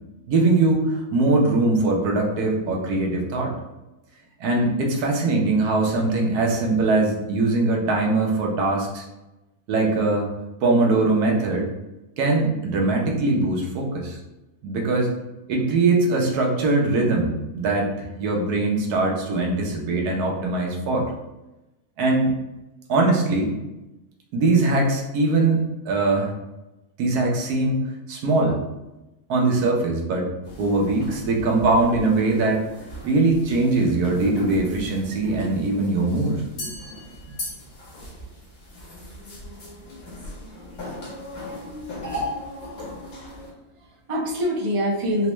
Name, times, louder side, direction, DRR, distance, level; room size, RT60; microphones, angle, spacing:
voice 1, 0.3-3.5 4.4-9.1 9.7-10.3 10.6-11.7 12.2-14.2 14.6-15.1 15.5-21.1 22.0-22.3 22.9-23.5 24.3-26.3 27.0-27.8 28.1-28.6 29.3-30.3 30.6-32.6 33.0-36.7, right 2 dB, 90° right, 0 dB, 1.3 m, -21 dB
sound 1, 30.4-43.5, left 1 dB, 70° left, 1.5 m, -37 dB
voice 2, 42.8-45.3, equal, 35° right, -4 dB, 0.5 m, -27 dB
4.2 x 2.1 x 3.0 m, 1.0 s
omnidirectional pair, 1.6 m